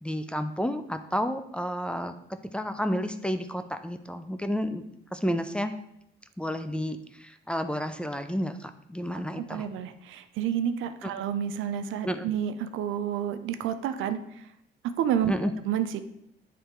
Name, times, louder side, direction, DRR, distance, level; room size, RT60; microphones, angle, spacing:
voice 1, 0.0-2.1 2.5-4.8 5.1-5.7 6.4-9.7 12.1-12.3 15.3-15.5, equal, 5° left, 9 dB, 0.5 m, -31 dB
voice 2, 9.4-14.4 14.8-15.3 15.7-16.0, right 9 dB, 85° right, 10 dB, 0.5 m, -30 dB
8.5 x 3.3 x 4.4 m, 0.75 s
cardioid pair, 90°, 20 cm